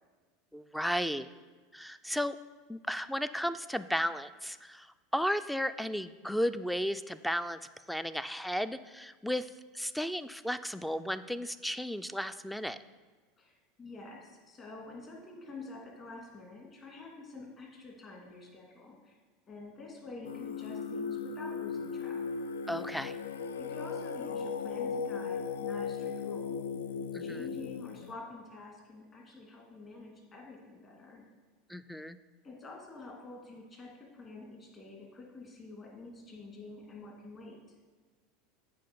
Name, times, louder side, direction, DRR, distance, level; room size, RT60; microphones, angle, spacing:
voice 1, 0.5-1.3 1.7-2.4 2.7-4.9 5.1-7.6 7.9-9.5 9.7-12.8 22.7-23.1 27.1-27.4 31.7-32.2, equal, ahead, 13 dB, 0.3 m, -34 dB
voice 2, 13.4-19.2 19.5-22.2 23.6-26.6 27.2-31.3 32.4-37.6, left 3 dB, 30° left, -1 dB, 2.4 m, -48 dB
Singing, 20.2-28.1, left 5 dB, 85° left, 0.3 m, -37 dB
7.7 x 5.0 x 5.3 m, 1.3 s
hypercardioid pair, 95°, 0 cm